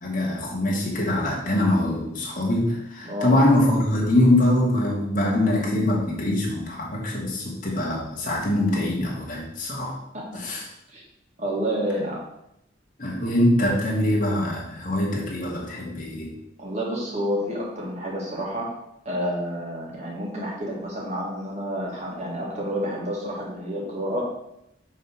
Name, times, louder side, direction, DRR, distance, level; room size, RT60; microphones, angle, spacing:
voice 1, 0.0-10.0 10.4-10.6 13.0-16.3, left 1 dB, 45° left, -4 dB, 1.9 m, -23 dB
voice 2, 3.0-3.3 10.1-10.2 10.9-11.0 11.4-12.2 16.6-18.7 19.1-24.3, equal, 40° right, -4 dB, 2.0 m, -29 dB
5.4 x 3.7 x 5.8 m, 0.82 s
head